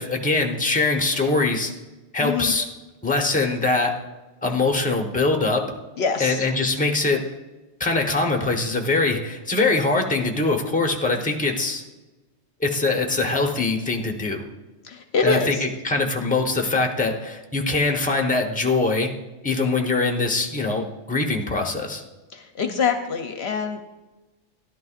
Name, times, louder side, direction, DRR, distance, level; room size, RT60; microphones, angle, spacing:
voice 1, 0.0-1.7 2.1-2.7 3.0-3.9 4.4-5.7 6.2-7.2 7.8-11.8 12.6-14.4 15.2-19.1 19.4-22.0, left 3 dB, 5° left, 2 dB, 0.9 m, -22 dB
voice 2, 2.2-2.5 6.0-6.4 14.8-15.6 22.3-23.8, left 5 dB, 65° left, 6 dB, 0.9 m, -25 dB
13.0 x 11.5 x 2.5 m, 1.1 s
omnidirectional pair, 1.2 m